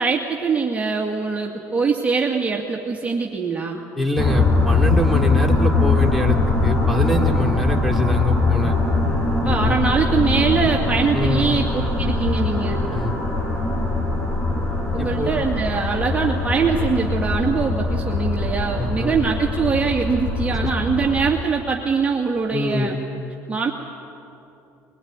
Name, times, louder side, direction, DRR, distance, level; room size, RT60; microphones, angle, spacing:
voice 1, 0.0-3.8 9.4-12.8 14.9-23.0 23.5-23.7, right 5 dB, 20° right, -1 dB, 2.2 m, -23 dB
voice 2, 4.0-6.4 6.6-8.7 9.4-9.8 11.1-11.5 12.9-13.2 15.0-15.3 18.8-19.1 22.5-22.9, equal, ahead, -1 dB, 3.0 m, -24 dB
sound 1, 4.2-21.3, left 3 dB, 30° left, 6.6 m, -21 dB
22.0 x 21.0 x 9.7 m, 2.8 s
supercardioid pair, 90°, 7 cm